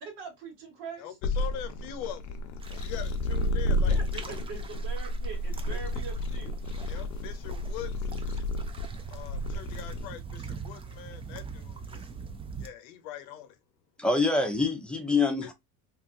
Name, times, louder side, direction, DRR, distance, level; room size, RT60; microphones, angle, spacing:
voice 1, 0.0-1.1 3.8-6.6, right 4 dB, 75° right, 1.6 m, -42 dB
voice 2, 1.0-2.4 2.7-4.2 5.7-5.8 6.9-8.2 9.1-12.1 12.5-13.6 15.4-15.5, left 10 dB, 85° left, 0.7 m, -42 dB
sound 1, 1.2-10.1, left 1 dB, 45° left, 0.5 m, -31 dB
sound 2, 2.6-12.7, right 5 dB, 15° right, 0.3 m, -44 dB
voice 3, 14.0-15.5, left 3 dB, ahead, 0.7 m, -25 dB
2.8 x 2.3 x 2.5 m
supercardioid pair, 85°, 42 cm